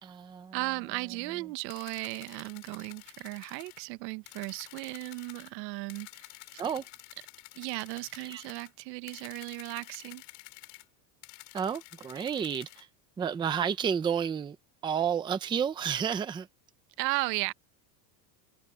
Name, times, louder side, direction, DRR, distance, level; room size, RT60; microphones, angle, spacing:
voice 1, 0.0-0.6 6.6-6.9 8.3-8.4 11.5-12.9 13.2-14.6 14.8-16.5, right 7 dB, 10° right, 0.5 m, -31 dB
voice 2, 0.5-6.3 6.5-6.6 7.5-10.2 17.0-17.5, right 23 dB, 80° right, 1.1 m, -36 dB
sound 1, 1.7-3.8 4.3-5.5 5.9-8.7 9.1-10.8 11.2-12.8, left 30 dB, 70° left, 7.8 m, -50 dB
cardioid pair, 165°, 49 cm